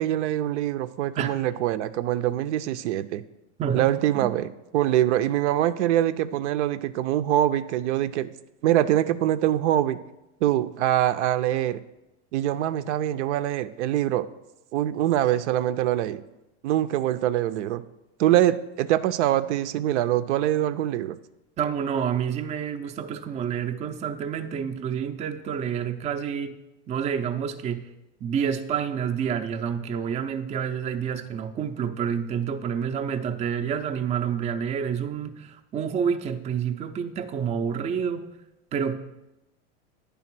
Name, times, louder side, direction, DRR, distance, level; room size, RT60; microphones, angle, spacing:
voice 1, 0.0-3.2 3.7-8.3 8.6-10.0 10.4-11.8 12.3-14.3 14.7-16.2 16.6-17.8 18.2-21.2, right 12 dB, 85° right, 12 dB, 0.5 m, -24 dB
voice 2, 3.6-4.3 21.6-26.6 26.9-27.9 28.2-38.3 38.7-39.0, right 7 dB, 20° right, 7 dB, 0.4 m, -28 dB
9.5 x 3.5 x 5.9 m, 0.94 s
supercardioid pair, 125°, 34 cm